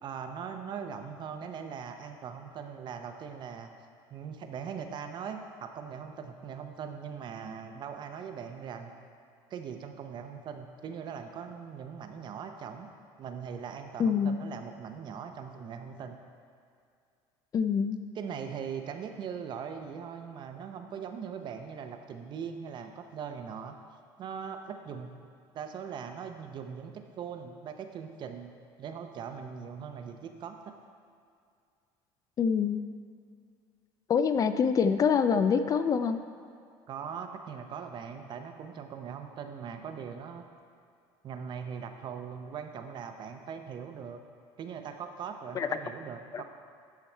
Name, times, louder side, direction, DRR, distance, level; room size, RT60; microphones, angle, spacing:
voice 1, 0.0-3.7 4.1-8.9 9.5-12.9 13.2-16.2 18.1-23.8 24.2-25.1 25.5-28.5 28.8-30.7 36.9-40.4 41.2-44.2 44.6-46.4, right 7 dB, 45° right, 6 dB, 0.7 m, -40 dB
voice 2, 14.0-14.4 17.5-18.0 32.4-32.8 34.1-36.2 45.6-45.7 46.3-46.4, left 6 dB, 35° left, 10 dB, 0.4 m, -25 dB
12.5 x 4.7 x 4.5 m, 2.3 s
supercardioid pair, 110°, 11 cm